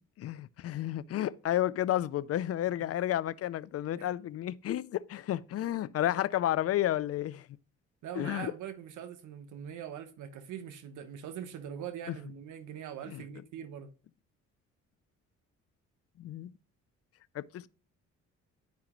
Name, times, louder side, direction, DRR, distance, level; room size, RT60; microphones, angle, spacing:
voice 1, 0.2-7.5 8.2-8.5 12.1-12.2 13.1-13.2 16.2-16.5 17.3-17.7, left 12 dB, 55° left, 0.4 m, -31 dB
voice 2, 8.0-13.9, right 9 dB, 80° right, 1.0 m, -42 dB
10.5 x 4.8 x 3.0 m
cardioid pair, 90°, 30 cm